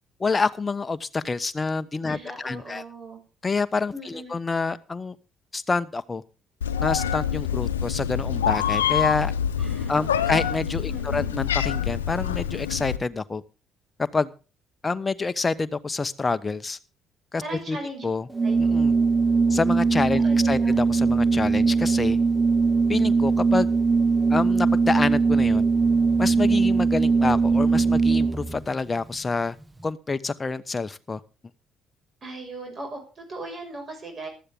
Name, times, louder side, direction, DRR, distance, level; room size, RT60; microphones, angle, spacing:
voice 1, 0.2-2.8 3.4-5.2 5.5-6.2 6.8-9.3 9.9-13.4 14.0-14.3 14.8-16.8 17.3-17.4 17.7-18.3 18.7-18.9 19.5-22.2 22.9-23.7 24.3-25.7 26.2-29.6 29.8-31.2, left 4 dB, 30° left, 13 dB, 1.0 m, -27 dB
voice 2, 2.1-3.2 3.9-4.4 9.6-10.5 10.9-11.3 17.4-18.1 18.4-18.6 20.1-20.8 32.2-34.3, right 2 dB, 40° right, 3 dB, 6.0 m, -38 dB
Meow, 6.6-13.0, left 9 dB, 90° left, 0.9 m, -26 dB
Organ, 18.3-28.6, right 4 dB, 15° right, 1.4 m, -21 dB
15.0 x 12.5 x 3.8 m, 0.34 s
hypercardioid pair, 50°, 0 cm